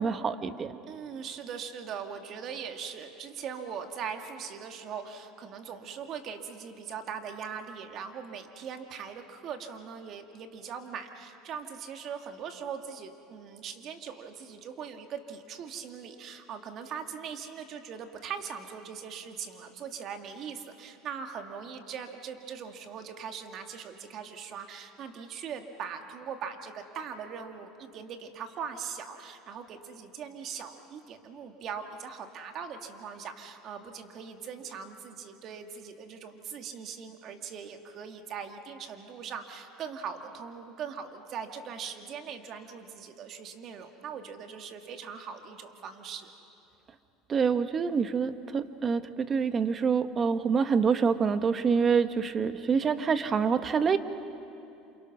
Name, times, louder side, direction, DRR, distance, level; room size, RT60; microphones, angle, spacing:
voice 1, 0.0-0.7 47.3-54.0, right 6 dB, 35° right, 10 dB, 1.3 m, -26 dB
voice 2, 0.9-46.3, right 7 dB, 50° right, 5 dB, 2.3 m, -40 dB
28.0 x 28.0 x 6.1 m, 2.7 s
supercardioid pair, 100°, 0 cm